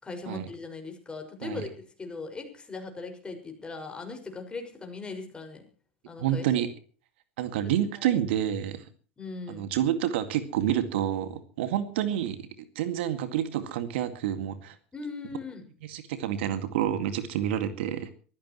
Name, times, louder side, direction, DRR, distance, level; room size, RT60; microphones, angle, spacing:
voice 1, 0.0-5.6 6.1-6.4 8.0-8.2 9.2-9.7 14.9-15.7, left 4 dB, 15° left, 4 dB, 6.0 m, -39 dB
voice 2, 6.2-6.7 7.4-8.8 9.5-12.5 12.8-14.8 15.9-18.1, right 11 dB, 65° right, 9 dB, 2.1 m, -28 dB
23.5 x 15.5 x 3.1 m, 0.40 s
hypercardioid pair, 100°, 7 cm